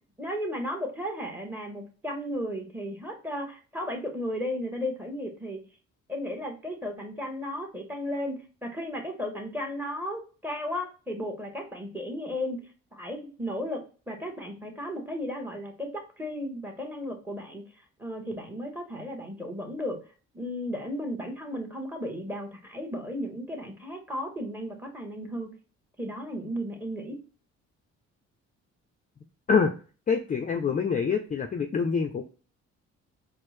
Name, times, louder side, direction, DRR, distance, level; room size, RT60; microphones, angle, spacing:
voice 1, 0.2-5.6 6.1-8.4 8.6-12.6 12.9-17.6 18.0-20.0 20.3-25.5 26.0-27.2, equal, 5° right, 3 dB, 1.0 m, -34 dB
voice 2, 30.1-32.2, left 5 dB, 30° left, 5 dB, 0.4 m, -25 dB
4.2 x 2.1 x 3.2 m, 0.36 s
cardioid pair, 90°, 30 cm